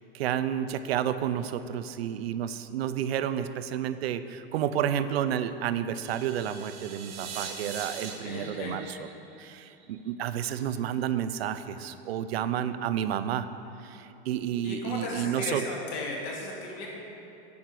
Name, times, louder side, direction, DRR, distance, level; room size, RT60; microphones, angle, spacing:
voice 1, 0.0-9.0 9.4-13.5 13.8-15.7, right 10 dB, 85° right, 12 dB, 0.6 m, -30 dB
sound 1, 6.0-10.1, right 6 dB, 35° right, 0.9 m, -42 dB
voice 2, 8.2-8.7 14.6-16.9, left 2 dB, 35° left, -3 dB, 2.1 m, -35 dB
8.6 x 8.5 x 6.1 m, 3.0 s
supercardioid pair, 175°, 30 cm